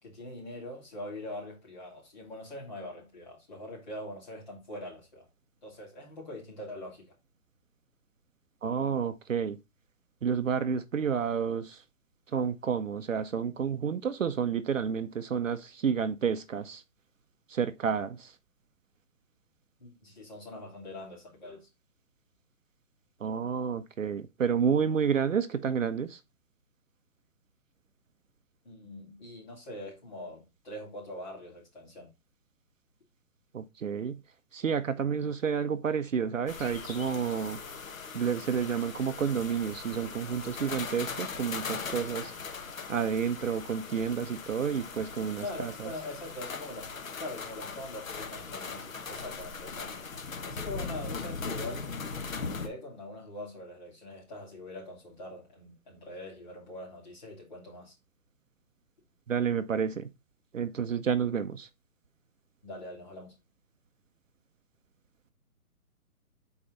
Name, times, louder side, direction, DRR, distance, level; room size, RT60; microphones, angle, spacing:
voice 1, 0.0-5.3 5.6-7.1 19.8-21.7 28.6-32.1 45.4-50.1 50.4-51.9 52.5-57.9 62.6-63.3, left 1 dB, 30° left, 2.8 m, -43 dB
voice 2, 8.6-9.6 10.2-11.8 12.3-16.8 17.5-18.3 23.2-26.2 33.5-34.2 34.5-37.6 38.1-42.3 42.9-45.9 59.3-60.1 60.5-61.7, right 7 dB, 60° right, 0.6 m, -30 dB
sound 1, 36.5-52.7, left 5 dB, 65° left, 1.1 m, -39 dB
5.7 x 4.4 x 3.9 m
hypercardioid pair, 180°, 44 cm